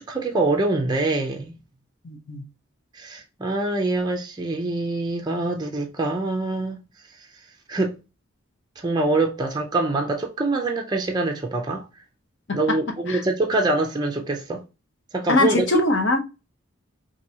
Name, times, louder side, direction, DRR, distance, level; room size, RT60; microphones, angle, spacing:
voice 1, 0.0-1.5 2.9-6.8 7.7-8.0 8.8-11.8 12.5-14.6 15.1-15.7, right 2 dB, 20° right, 0.4 m, -24 dB
voice 2, 2.0-2.4 12.5-12.6 13.1-13.2 15.3-16.2, left 2 dB, 55° left, 0.7 m, -21 dB
4.4 x 2.6 x 2.7 m
head